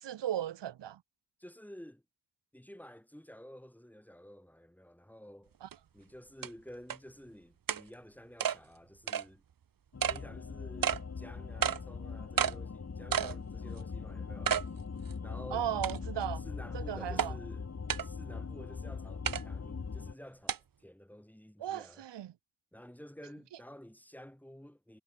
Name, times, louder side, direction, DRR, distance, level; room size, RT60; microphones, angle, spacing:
voice 1, 0.0-1.0 5.6-5.7 15.5-16.4 16.7-17.3 21.6-22.3, right 11 dB, 85° right, 2.0 m, -36 dB
voice 2, 1.4-2.0 2.5-5.5 5.9-9.4 10.1-14.6 15.2-15.7 16.4-17.7 18.0-22.0 22.7-25.0, equal, 5° left, 5.6 m, -51 dB
sound 1, 5.7-5.8 6.4-6.5 6.9-7.0 7.7-7.8 8.4-8.6 9.1-9.2 10.0-10.2 10.8-11.0 11.6-11.8 12.4-12.6 13.1-13.4 13.8-13.9 14.5-14.7 15.1-15.2 15.8-16.2 17.2-17.3 17.9-18.1 19.3-19.4 20.5-20.6, right 8 dB, 55° right, 1.5 m, -30 dB
sound 2, 9.9-20.1, left 5 dB, 40° left, 2.8 m, -41 dB
cardioid pair, 80°, 41 cm